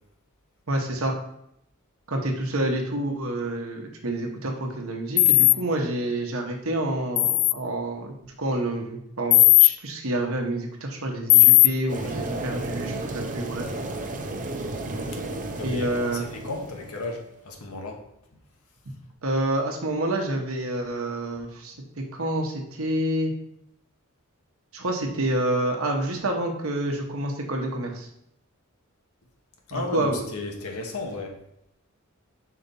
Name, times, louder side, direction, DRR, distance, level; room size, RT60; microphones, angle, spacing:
voice 1, 0.7-1.1 2.1-13.7 15.6-16.3 19.2-21.7 22.1-23.3 24.7-28.1 29.7-30.3, right 1 dB, 70° right, 2 dB, 1.1 m, -28 dB
sound 1, 5.2-5.5 7.2-7.5 9.3-9.7 11.3-11.7, left 18 dB, 60° left, 0.3 m, -15 dB
sound 2, 11.9-17.3, right 2 dB, 35° right, 0.7 m, -33 dB
voice 2, 15.6-18.0 29.7-31.4, left 3 dB, 85° left, 2 dB, 1.2 m, -34 dB
5.1 x 4.2 x 5.3 m, 0.76 s
head